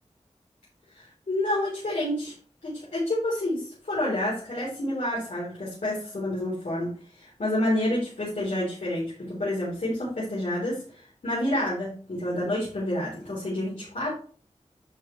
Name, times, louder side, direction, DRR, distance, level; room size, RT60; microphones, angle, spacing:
voice 1, 0.9-2.3 2.6-6.9 7.2-10.8 11.2-14.1, left 1 dB, 80° left, -8 dB, 3.9 m, -29 dB
11.0 x 5.4 x 3.3 m, 0.43 s
wide cardioid pair, 75°, 12 cm